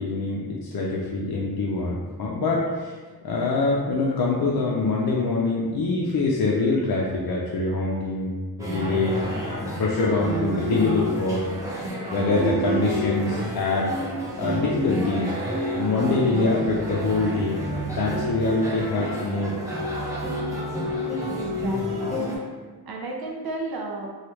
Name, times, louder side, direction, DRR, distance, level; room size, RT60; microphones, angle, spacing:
voice 1, 0.0-3.0 3.2-8.3 8.6-11.5 12.1-13.9 14.3-15.3 15.8-19.6, left 3 dB, 70° left, -4 dB, 0.5 m, -24 dB
sound 1, 8.6-22.4, equal, 10° right, 0.7 m, -29 dB
voice 2, 21.3-22.1 22.8-24.1, right 2 dB, 70° right, 0 dB, 0.5 m, -33 dB
3.1 x 2.3 x 3.0 m, 1.4 s
wide cardioid pair, 90°, 39 cm